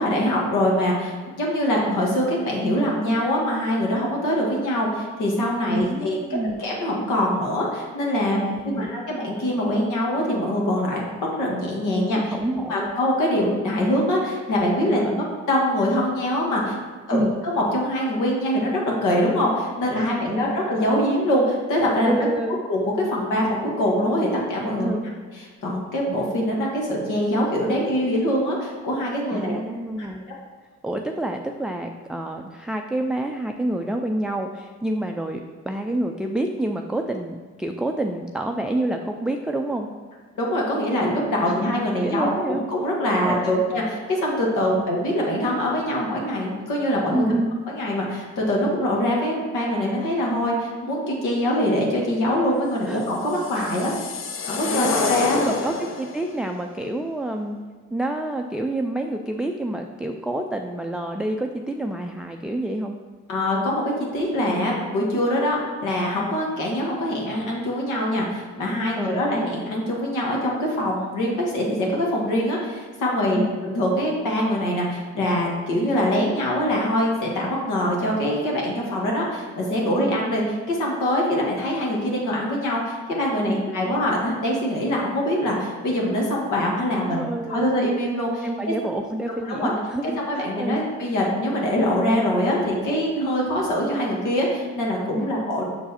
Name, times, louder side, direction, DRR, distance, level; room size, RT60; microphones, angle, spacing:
voice 1, 0.0-6.2 6.4-11.0 11.4-12.3 12.7-16.8 17.1-22.1 22.5-25.0 25.4-29.6 30.0-30.1 40.4-47.3 47.7-53.9 54.4-55.4 63.3-88.7 89.5-89.7 90.0-95.6, equal, 85° left, -2 dB, 1.8 m, -24 dB
voice 2, 5.7-6.6 8.3-8.9 12.3-13.0 14.9-15.3 17.1-17.3 19.9-20.6 22.0-22.6 24.8-25.0 29.3-30.3 30.8-35.4 35.7-39.9 41.4-41.6 42.0-42.6 43.2-43.6 44.8-44.9 47.1-47.6 52.9-53.1 53.6-53.7 54.7-57.6 57.9-62.9 68.9-69.3 73.3-73.6 80.0-80.2 83.5-83.8 87.1-87.7 88.4-90.8 95.1-95.3, right 1 dB, 5° right, 3 dB, 0.3 m, -28 dB
sound 1, 53.1-56.3, left 4 dB, 45° left, 0.7 m, -28 dB
6.4 x 4.7 x 4.2 m, 1.5 s
cardioid pair, 90°, 30 cm